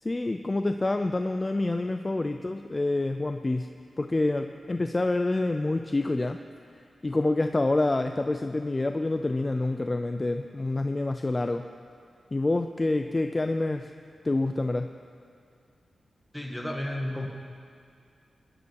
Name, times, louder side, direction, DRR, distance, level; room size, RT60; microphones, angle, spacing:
voice 1, 0.0-3.7 4.0-6.4 7.0-11.7 12.3-13.9 14.2-14.9, left 2 dB, 25° left, 7 dB, 0.5 m, -27 dB
voice 2, 16.3-17.3, left 1 dB, 5° left, 0 dB, 2.0 m, -32 dB
21.0 x 11.5 x 4.7 m, 2.3 s
wide cardioid pair, 85°, 0 cm